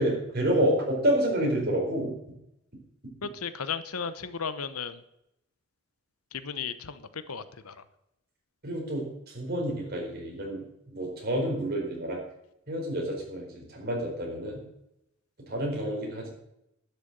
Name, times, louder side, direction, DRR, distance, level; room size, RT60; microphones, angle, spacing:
voice 1, 0.0-2.2 8.6-12.2 12.7-14.6 15.5-16.3, equal, 45° right, -1 dB, 4.5 m, -29 dB
voice 2, 3.2-5.0 6.3-7.7, left 6 dB, 85° left, 13 dB, 0.9 m, -35 dB
11.5 x 6.9 x 8.0 m, 0.83 s
head